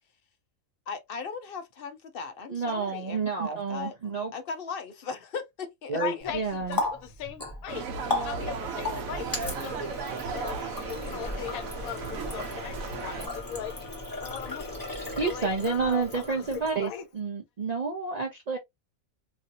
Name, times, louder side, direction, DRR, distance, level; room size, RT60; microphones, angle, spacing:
voice 1, 0.9-3.2 3.4-3.9 4.3-6.3 8.6-8.7 14.4-14.6, left 5 dB, 55° left, 0.7 m, -38 dB
voice 2, 2.5-4.3 5.9-6.8 15.2-18.6, right 4 dB, 55° right, 0.4 m, -30 dB
voice 3, 5.9-7.9 8.2-9.9 10.3-13.7 14.2-14.7 15.2-16.5 16.8-17.1, left 10 dB, 85° left, 1.1 m, -39 dB
Water tap faucet, 6.2-17.0, left 2 dB, 15° left, 1.1 m, -36 dB
sound 1, 7.7-13.3, right 5 dB, 80° right, 1.1 m, -36 dB
3.0 x 2.6 x 2.6 m
omnidirectional pair, 1.4 m